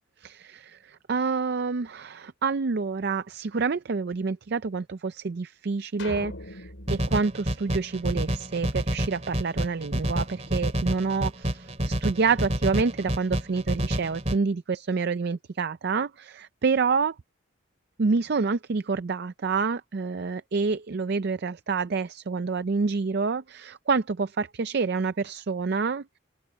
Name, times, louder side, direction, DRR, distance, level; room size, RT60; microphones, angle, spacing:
voice 1, 0.2-17.2 18.0-26.2, right 4 dB, 50° right, 0.5 m, -28 dB
sound 1, 6.0-8.4, left 1 dB, 65° left, 6.2 m, -41 dB
sound 2, 6.9-14.4, equal, 30° right, 2.6 m, -29 dB
open air
head